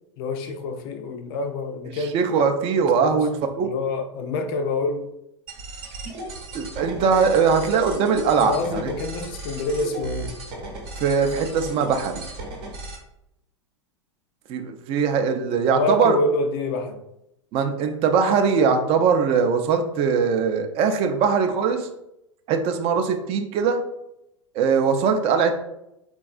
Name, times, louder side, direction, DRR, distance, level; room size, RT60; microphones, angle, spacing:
voice 1, 0.2-2.1 2.8-3.3 3.6-5.1 8.4-10.4 15.6-17.0, left 3 dB, 50° left, 0.4 m, -27 dB
voice 2, 1.9-3.3 3.6-3.7 6.5-8.9 11.0-12.2 14.5-16.2 17.5-21.9 22.5-23.8 24.5-25.5, right 6 dB, 35° right, 0.4 m, -21 dB
sound 1, 5.5-13.0, right 2 dB, 60° right, 0.8 m, -36 dB
3.5 x 2.3 x 2.4 m
hypercardioid pair, 95°, 16 cm